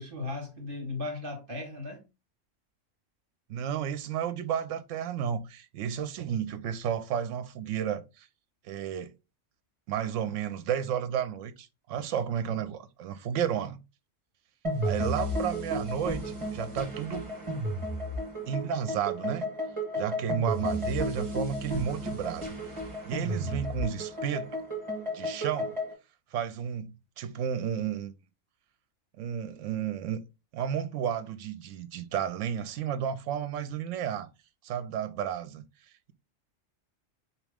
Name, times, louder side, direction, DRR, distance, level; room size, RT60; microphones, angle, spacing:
voice 1, 0.0-2.1, left 3 dB, 45° right, 1.6 m, -36 dB
voice 2, 3.5-8.3 8.6-9.1 9.9-13.8 14.8-17.3 18.5-19.5 20.0-22.5 23.1-24.5 25.1-25.7 26.3-28.1 29.2-30.2 30.5-34.3 34.6-35.6, right 9 dB, 75° right, 0.9 m, -32 dB
sound 1, 14.6-25.9, equal, 25° right, 1.3 m, -33 dB
4.2 x 3.0 x 3.5 m
omnidirectional pair, 1.3 m